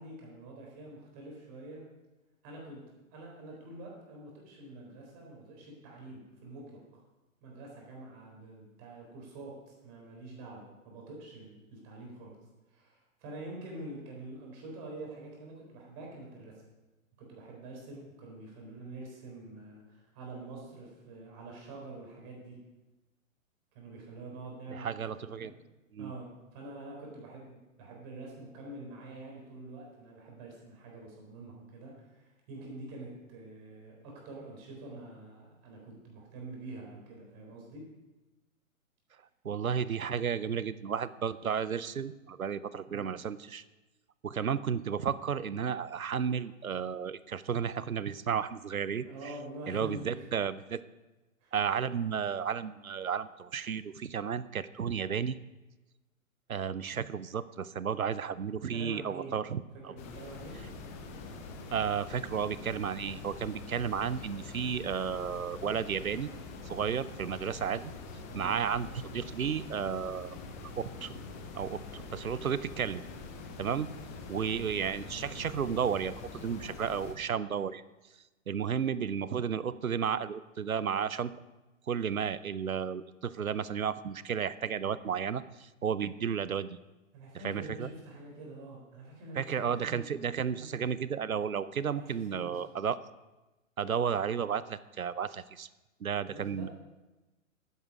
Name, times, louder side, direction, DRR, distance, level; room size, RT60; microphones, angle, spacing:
voice 1, 0.0-1.8 2.4-2.8 3.1-7.0 7.4-12.4 12.7-16.5 17.2-22.6 23.7-25.5 26.0-37.8 42.9-43.1 49.0-50.3 51.4-51.5 58.7-59.4 59.9-60.6 68.3-68.5 87.1-90.1 90.5-90.7 92.0-92.6 96.3-96.7, right 2 dB, 30° right, -1 dB, 4.0 m, -46 dB
voice 2, 24.7-25.5 25.9-26.1 39.4-43.6 44.2-49.3 49.7-50.8 51.5-55.3 56.5-59.9 61.7-66.3 66.6-67.9 68.3-70.4 70.8-71.1 71.5-73.0 73.6-73.9 74.3-77.8 78.5-81.3 81.9-86.8 87.4-87.9 89.4-93.0 93.8-95.7 96.0-96.7, right 7 dB, 80° right, 17 dB, 0.7 m, -33 dB
sound 1, 60.0-77.1, left 3 dB, 10° left, 0.5 m, -44 dB
11.5 x 9.6 x 4.9 m, 1.1 s
figure-of-eight pair, 120°, 41 cm